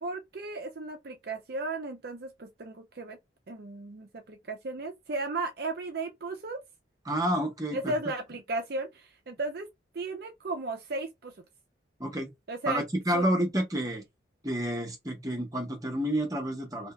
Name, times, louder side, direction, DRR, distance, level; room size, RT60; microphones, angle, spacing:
voice 1, 0.0-3.2 3.5-6.6 7.7-9.7 9.9-11.3 12.5-12.8 13.1-13.3, right 2 dB, 55° right, 0.5 m, -35 dB
voice 2, 7.1-7.9 12.0-12.3 12.7-14.0 14.4-16.9, right 1 dB, 20° right, 1.0 m, -29 dB
2.8 x 2.7 x 2.2 m
head